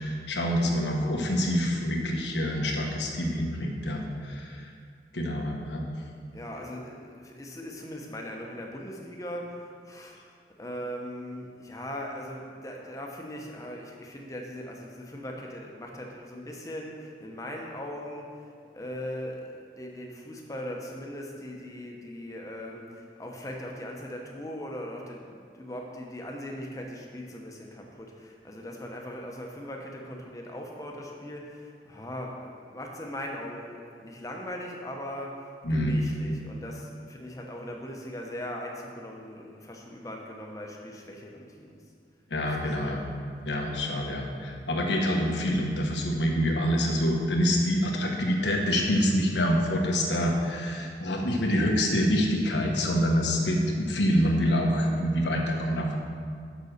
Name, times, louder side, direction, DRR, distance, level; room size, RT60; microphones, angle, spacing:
voice 1, 0.0-4.7 5.1-5.8 35.6-35.9 42.3-43.0 43.4-55.9, equal, 90° left, 0 dB, 1.3 m, -26 dB
voice 2, 6.3-10.2 10.6-18.5 18.7-41.8 42.7-43.0, equal, 20° left, 0 dB, 0.9 m, -39 dB
6.7 x 6.3 x 6.6 m, 2.2 s
head